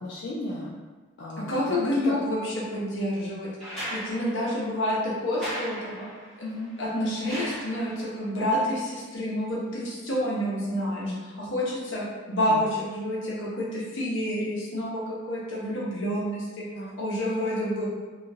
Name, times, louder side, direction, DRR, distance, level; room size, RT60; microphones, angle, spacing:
voice 1, 0.0-0.8 1.2-1.8 2.0-2.1 5.8-6.1 6.4-6.7 11.0-11.3 12.5-12.6 16.7-16.9, left 2 dB, 65° left, -5 dB, 0.4 m, -35 dB
voice 2, 1.4-3.5 3.9-5.8 6.8-16.6 17.0-17.8, equal, 85° left, -6 dB, 1.0 m, -28 dB
sound 1, 3.6-8.2 9.8-9.9, equal, 5° left, 0.9 m, -38 dB
2.9 x 2.4 x 2.6 m, 1.3 s
head